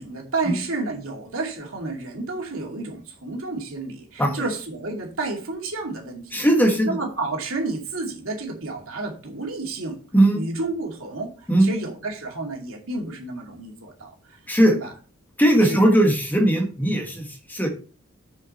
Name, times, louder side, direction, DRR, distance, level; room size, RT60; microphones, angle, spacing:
voice 1, 0.0-6.5 6.9-10.0 10.3-14.4 14.7-14.9 15.6-15.8, right 3 dB, 75° right, 0 dB, 2.5 m, -31 dB
voice 2, 6.3-7.0 10.1-10.4 11.5-11.7 14.5-14.8 15.4-17.7, right 1 dB, 10° left, 2 dB, 1.6 m, -19 dB
7.1 x 6.3 x 4.3 m, 0.39 s
head